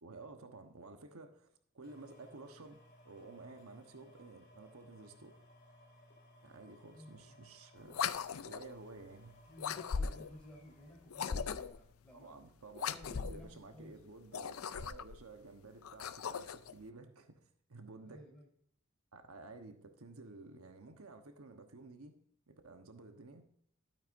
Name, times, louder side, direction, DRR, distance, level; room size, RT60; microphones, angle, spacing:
voice 1, 0.0-2.8 3.0-5.4 6.4-8.0 8.4-9.4 12.1-17.4 17.7-18.2 19.1-22.1 22.5-23.4, right 3 dB, 90° right, 6 dB, 1.1 m, -53 dB
sound 1, 1.8-11.8 12.4-12.5, left 1 dB, 40° left, 4.1 m, -62 dB
voice 2, 6.9-7.4 8.0-8.3 9.5-12.3 12.8-14.0 18.0-18.5, left 1 dB, 5° left, -2 dB, 4.0 m, -55 dB
sound 2, 7.9-8.7 9.6-10.4 11.1-11.8 12.7-13.5 14.2-15.2 15.8-16.7, left 6 dB, 80° left, 0.5 m, -38 dB
12.0 x 8.9 x 2.6 m, 0.66 s
head